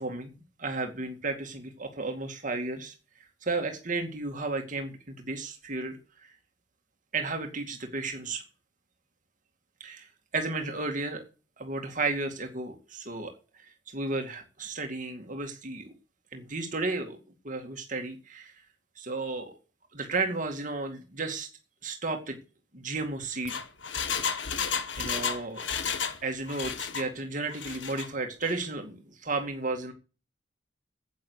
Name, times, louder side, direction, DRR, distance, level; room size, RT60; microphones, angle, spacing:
voice 1, 0.0-2.9 3.4-6.3 7.1-8.4 9.8-11.2 11.6-15.9 16.3-17.2 17.4-18.5 19.0-19.6 19.9-21.5 21.8-22.4 22.7-23.5 25.0-25.6 26.2-29.9, right 3 dB, 45° right, 4 dB, 2.3 m, -33 dB
Engine, 23.2-26.2 26.5-27.1 27.5-28.1 28.4-28.5, left 6 dB, 85° left, 1.7 m, -32 dB
10.5 x 8.8 x 8.1 m, 0.33 s
head